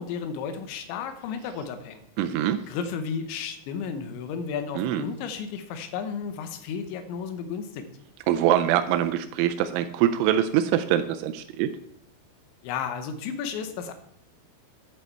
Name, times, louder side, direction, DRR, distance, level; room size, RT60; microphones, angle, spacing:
voice 1, 0.0-2.0 2.6-7.8 12.6-13.9, left 6 dB, 75° left, 9 dB, 3.1 m, -33 dB
voice 2, 2.2-2.6 4.8-5.0 8.3-11.7, right 11 dB, 85° right, 8 dB, 2.9 m, -23 dB
10.5 x 8.4 x 4.6 m, 0.70 s
omnidirectional pair, 5.7 m